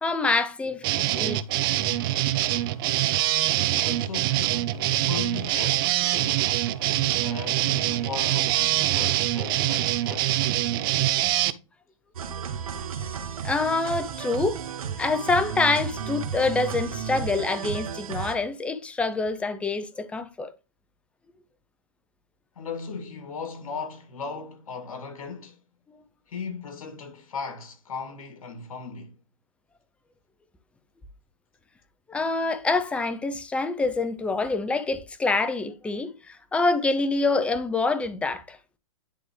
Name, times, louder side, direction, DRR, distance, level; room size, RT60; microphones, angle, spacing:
voice 1, 0.0-0.9 1.1-1.4 12.4-12.5 13.4-14.6 15.0-20.5 32.1-38.6, left 3 dB, 5° left, 0.6 m, -26 dB
sound 1, 0.8-11.5, right 15 dB, 40° right, 0.5 m, -24 dB
voice 2, 3.7-6.5 7.2-10.4 22.6-25.6 26.3-29.2, left 5 dB, 80° left, 2.3 m, -37 dB
sound 2, 12.1-18.3, right 7 dB, 85° right, 1.4 m, -33 dB
10.0 x 3.6 x 3.2 m
hypercardioid pair, 145°, 18 cm